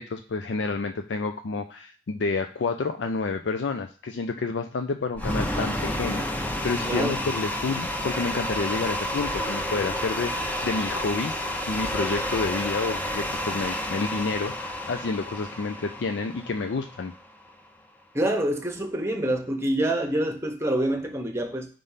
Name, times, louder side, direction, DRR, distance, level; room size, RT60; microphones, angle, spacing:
voice 1, 0.0-11.4 11.7-17.1, left 4 dB, 90° left, 6 dB, 0.5 m, -29 dB
sound 1, 5.2-17.3, left 1 dB, 10° left, 0.6 m, -30 dB
voice 2, 6.8-7.2 18.1-21.7, right 1 dB, 15° right, 5 dB, 0.9 m, -26 dB
5.3 x 3.4 x 5.5 m, 0.40 s
head